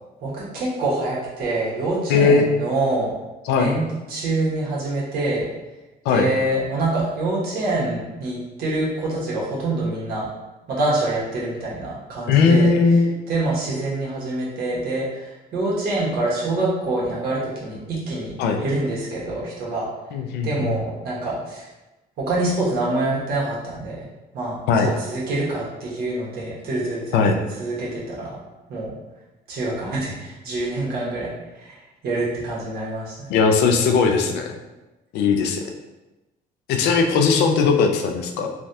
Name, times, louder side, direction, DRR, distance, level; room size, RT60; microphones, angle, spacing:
voice 1, 0.2-3.1 3.5-3.8 4.1-5.4 6.1-10.3 10.7-12.7 13.3-18.3 18.6-19.9 20.4-21.7 22.2-23.9 24.3-27.2 27.6-28.3 28.7-28.9 29.5-31.3 31.6-31.7 32.0-33.3, right 2 dB, 65° right, -5 dB, 1.2 m, -25 dB
voice 2, 2.1-2.5 3.4-3.7 6.1-6.3 12.3-13.2 18.4-18.6 20.1-20.7 24.7-24.9 27.1-27.4 33.3-34.6 35.1-35.7 36.7-38.5, left 5 dB, 80° left, 4 dB, 0.4 m, -18 dB
3.3 x 2.3 x 2.6 m, 1.1 s
cardioid pair, 110°, 17 cm